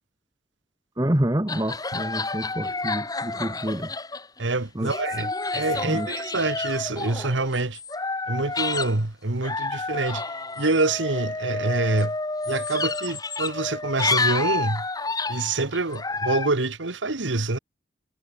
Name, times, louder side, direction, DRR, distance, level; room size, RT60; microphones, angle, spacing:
voice 1, 1.0-3.9 4.7-4.9 5.8-6.1, right 1 dB, 20° right, 1.5 m, -27 dB
sound 1, 1.5-4.4 4.8-9.0 9.4-16.5, left 3 dB, 20° left, 2.2 m, -29 dB
voice 2, 4.4-7.8 8.3-10.2 10.6-12.2 12.5-14.8 15.3-17.6, right 2 dB, 90° right, 1.7 m, -26 dB
head